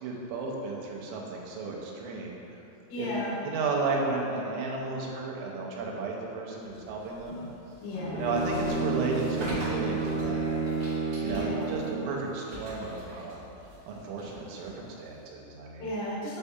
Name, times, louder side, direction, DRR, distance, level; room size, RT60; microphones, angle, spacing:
voice 1, 0.0-2.4 3.0-3.1 3.4-7.4 8.1-10.6 11.2-13.4 13.9-15.9, right 3 dB, 90° right, -2 dB, 3.0 m, -33 dB
voice 2, 2.9-3.4 7.8-8.2 8.6-8.8 11.3-11.7 15.8-16.4, equal, 75° left, -8 dB, 2.1 m, -34 dB
sound 1, 6.6-15.3, equal, 70° right, 1.5 m, -43 dB
Bowed string instrument, 7.9-12.1, right 4 dB, 90° left, 2.3 m, -31 dB
7.8 x 2.7 x 2.3 m, 2.9 s
omnidirectional pair, 5.4 m